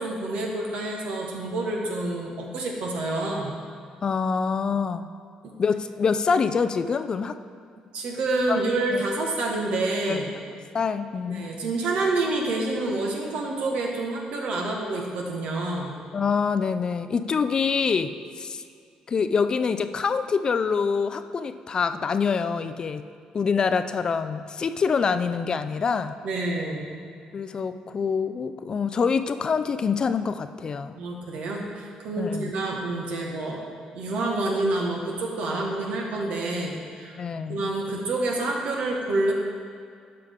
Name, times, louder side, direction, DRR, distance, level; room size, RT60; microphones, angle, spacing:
voice 1, 0.0-3.6 5.4-5.5 7.9-10.3 11.3-15.9 26.2-26.9 30.9-33.6 33.9-37.2 37.5-39.3, right 2 dB, 70° right, 0 dB, 1.5 m, -28 dB
voice 2, 4.0-5.1 5.6-7.4 8.5-8.6 8.9-9.1 10.1-10.2 10.7-11.5 16.1-18.6 19.1-23.0 23.3-26.1 27.3-30.9 32.2-32.5 37.2-37.7, left 5 dB, 40° left, 10 dB, 0.4 m, -25 dB
11.5 x 5.8 x 3.6 m, 2.2 s
cardioid pair, 95°, 2 cm